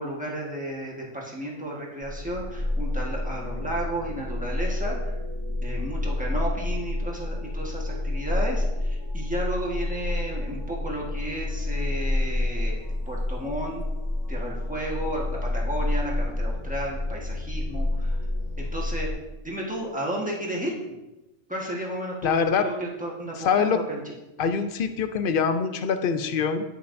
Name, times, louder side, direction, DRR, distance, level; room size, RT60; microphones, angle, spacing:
voice 1, 0.0-5.2 5.6-13.8 14.3-18.2 18.6-19.1 19.4-20.9 21.5-24.0, right 1 dB, 5° right, -3 dB, 1.3 m, -33 dB
sound 1, 2.0-19.1, left 1 dB, 30° left, 1.5 m, -29 dB
voice 2, 22.2-22.7 23.4-23.8 24.4-26.6, left 6 dB, 60° left, 9 dB, 0.6 m, -24 dB
9.9 x 5.4 x 2.6 m, 1.0 s
omnidirectional pair, 1.2 m